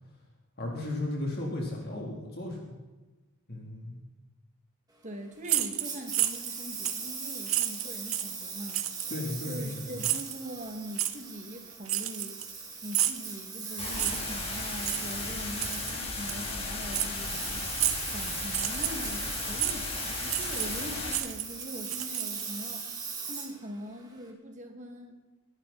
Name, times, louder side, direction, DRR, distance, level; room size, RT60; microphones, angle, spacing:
voice 1, 0.6-2.8 3.5-4.0 9.1-10.1, left 1 dB, 45° left, -1 dB, 3.7 m, -35 dB
voice 2, 5.0-8.8 9.5-12.4 12.8-17.6 18.1-22.9 23.2-25.1, equal, 35° right, 3 dB, 2.5 m, -42 dB
sound 1, 5.4-6.5 6.8-7.1 7.5-8.3 8.7-9.1 10.0-10.3 11.0-11.1 11.9-12.6 12.9-13.2 14.0-14.3 14.8-15.0 15.6-15.9 16.3-16.4 16.9-17.1 17.8-18.1 18.5-19.1 19.6-19.8 20.3-20.8 21.1-22.6, right 13 dB, 70° right, 1.1 m, -30 dB
Engine, 5.8-24.3, right 5 dB, 20° right, 2.6 m, -40 dB
sound 2, 13.8-21.2, left 3 dB, 25° left, 3.1 m, -35 dB
25.0 x 11.5 x 4.4 m, 1.2 s
head